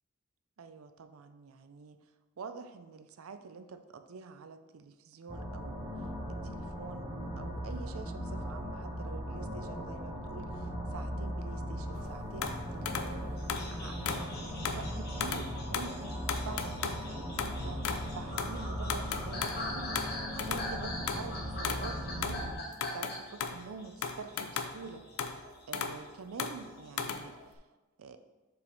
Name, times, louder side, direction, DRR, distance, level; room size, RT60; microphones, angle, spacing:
voice 1, 0.6-2.0 2.4-5.9 6.3-13.3 13.7-22.5 22.9-25.1 25.7-27.4 28.0-28.2, right 5 dB, 75° right, 9 dB, 0.5 m, -47 dB
sound 1, 5.3-22.5, equal, 20° right, 1.1 m, -38 dB
sound 2, 11.9-12.1 12.4-13.2 13.5-14.3 14.7-14.9 15.2-15.5 15.7-16.0 16.3-18.1 18.4-18.6 18.9-20.7 21.1-22.4 22.7-23.6 24.0-24.9 25.2-26.0 26.4-27.6, left 6 dB, 75° left, 0.5 m, -36 dB
sound 3, 13.4-25.2 25.5-26.9, left 1 dB, 50° left, 1.6 m, -43 dB
7.0 x 5.2 x 3.1 m, 1.2 s
head